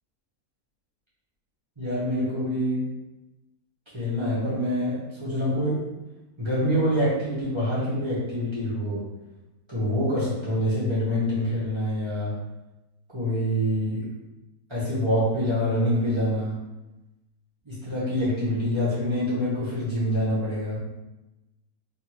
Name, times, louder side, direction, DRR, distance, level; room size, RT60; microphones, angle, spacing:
voice 1, 1.8-2.9 3.9-5.9 6.4-9.0 9.7-12.4 13.1-14.0 14.7-16.6 17.6-20.8, equal, 20° right, -11 dB, 0.9 m, -26 dB
2.8 x 2.6 x 3.0 m, 1.0 s
omnidirectional pair, 1.7 m